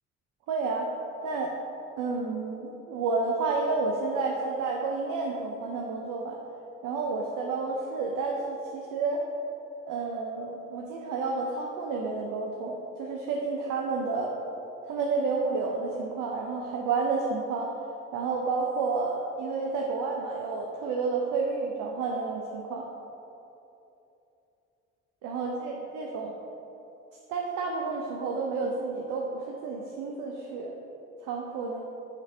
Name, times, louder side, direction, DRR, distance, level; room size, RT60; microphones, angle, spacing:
voice 1, 0.5-0.9 1.2-1.5 2.0-6.4 6.8-9.2 9.9-14.3 14.8-17.7 18.1-22.8 25.2-26.3 27.3-30.7 31.2-31.8, right 4 dB, 65° right, 0 dB, 0.7 m, -30 dB
6.5 x 3.3 x 4.9 m, 2.9 s
hypercardioid pair, 45°, 34 cm